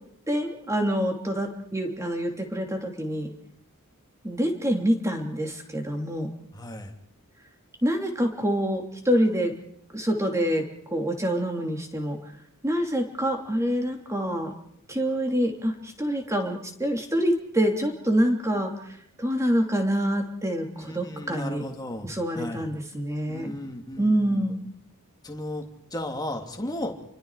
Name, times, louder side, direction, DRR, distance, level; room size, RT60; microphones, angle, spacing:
voice 1, 0.3-3.3 4.2-6.3 7.8-9.5 9.9-10.6 10.9-12.2 12.6-14.5 14.9-18.8 19.2-21.6 22.0-23.5 24.0-24.7, equal, 15° right, 3 dB, 3.1 m, -26 dB
voice 2, 6.5-6.9 20.8-22.1 22.3-22.7 23.3-24.4 25.2-25.6 25.9-26.9, left 1 dB, 20° left, 2 dB, 2.9 m, -35 dB
29.0 x 24.0 x 4.9 m, 0.69 s
head